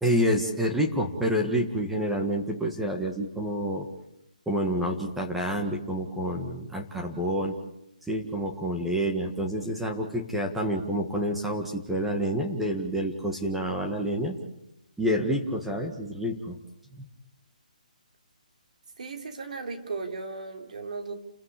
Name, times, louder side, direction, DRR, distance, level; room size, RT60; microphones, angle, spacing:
voice 1, 0.0-3.9 4.5-7.5 8.1-14.4 15.0-16.6 16.9-17.0, equal, 5° right, 1 dB, 1.8 m, -28 dB
voice 2, 19.0-21.1, right 4 dB, 60° right, 5 dB, 3.4 m, -36 dB
29.0 x 15.5 x 8.4 m, 0.84 s
hypercardioid pair, 155°, 4 cm